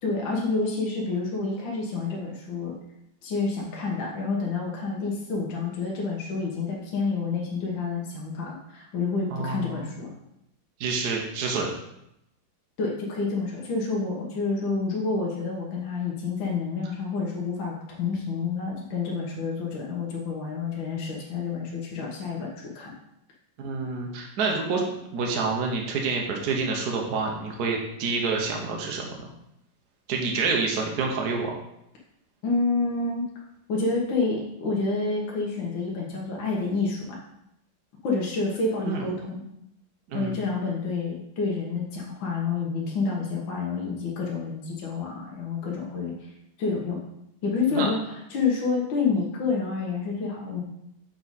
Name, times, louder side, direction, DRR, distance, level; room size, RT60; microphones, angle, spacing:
voice 1, 0.0-2.7 3.2-10.1 12.8-22.9 32.4-33.3 33.7-37.2 38.0-39.4 40.1-46.3 46.6-47.0 47.4-50.6, left 4 dB, 65° left, -3 dB, 1.8 m, -28 dB
voice 2, 9.3-9.9 10.8-11.7 23.6-29.1 30.1-31.5 38.9-39.0 40.1-40.4 47.7-47.9, right 4 dB, 55° right, 0 dB, 1.3 m, -28 dB
6.8 x 4.7 x 4.1 m, 0.81 s
omnidirectional pair, 2.3 m